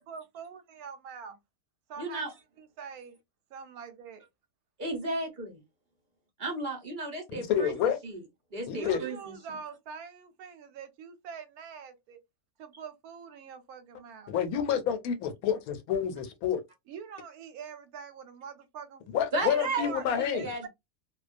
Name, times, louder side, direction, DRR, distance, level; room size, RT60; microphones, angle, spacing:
voice 1, 0.1-1.4 1.9-2.3 2.6-3.2 3.5-4.2 8.7-12.2 12.6-14.3 16.9-19.0 19.8-20.1 20.3-20.7, right 6 dB, 85° right, 1.1 m, -44 dB
voice 2, 2.0-2.3 4.8-5.6 6.4-7.7 8.0-8.2 8.5-9.3 19.3-20.6, right 2 dB, 40° right, 0.8 m, -34 dB
voice 3, 7.3-8.0 8.7-9.0 14.3-16.6 19.1-20.5, left 8 dB, 80° left, 1.0 m, -29 dB
2.3 x 2.2 x 2.4 m
omnidirectional pair, 1.5 m